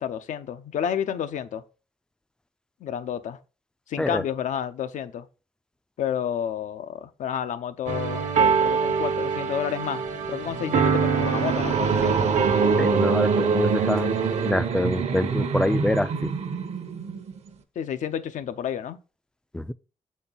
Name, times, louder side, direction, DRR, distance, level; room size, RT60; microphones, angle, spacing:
voice 1, 0.0-1.6 2.8-3.4 3.9-5.3 6.0-12.3 17.8-19.0, left 9 dB, 80° left, 0.6 m, -30 dB
sound 1, 7.9-14.5, right 6 dB, 80° right, 1.0 m, -26 dB
sound 2, 10.1-17.5, right 5 dB, 60° right, 0.8 m, -25 dB
voice 2, 12.8-14.1 14.4-16.3 19.5-19.7, left 1 dB, 5° left, 0.3 m, -26 dB
6.9 x 4.2 x 3.8 m
cardioid pair, 95°, 13 cm